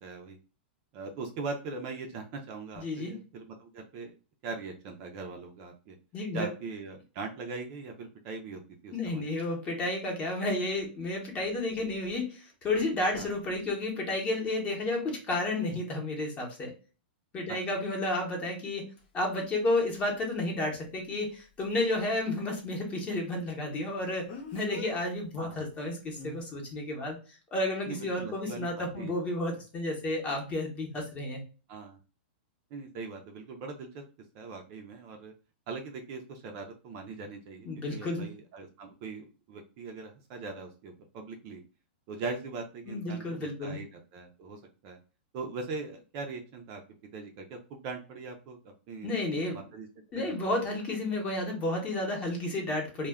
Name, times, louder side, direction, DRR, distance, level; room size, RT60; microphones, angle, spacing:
voice 1, 0.0-0.4 0.9-4.1 4.4-6.0 6.3-9.2 13.1-13.3 25.4-25.6 27.8-29.1 31.7-32.0 32.7-34.0 34.3-35.3 35.7-41.6 42.1-45.0 45.3-46.8 47.1-48.6 48.9-49.2 49.5-49.9 50.1-50.3, right 4 dB, 35° right, 3 dB, 0.4 m, -41 dB
voice 2, 2.8-3.1 6.1-6.5 8.9-16.7 17.3-18.9 19.1-24.3 24.5-27.2 27.5-31.4 37.6-38.3 42.9-43.8 49.0-49.6 50.1-53.1, left 2 dB, 20° left, 1 dB, 0.8 m, -31 dB
Speech, 19.0-19.1 24.3-24.9 26.1-26.4, left 2 dB, 60° left, 0.8 m, -42 dB
2.2 x 2.1 x 3.4 m, 0.34 s
supercardioid pair, 155°, 6 cm